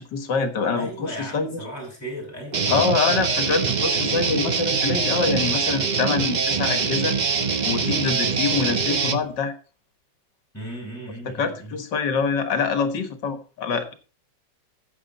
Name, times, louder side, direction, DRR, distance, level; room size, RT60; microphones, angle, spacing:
voice 1, 0.0-1.6 2.7-7.2 7.6-9.5 11.3-13.9, left 5 dB, 70° left, 8 dB, 2.1 m, -25 dB
voice 2, 0.7-2.9 10.5-11.7, right 1 dB, 10° left, 0 dB, 5.8 m, -36 dB
Guitar, 2.5-9.2, right 5 dB, 45° right, 0.6 m, -23 dB
14.5 x 8.2 x 4.2 m, 0.37 s
omnidirectional pair, 2.0 m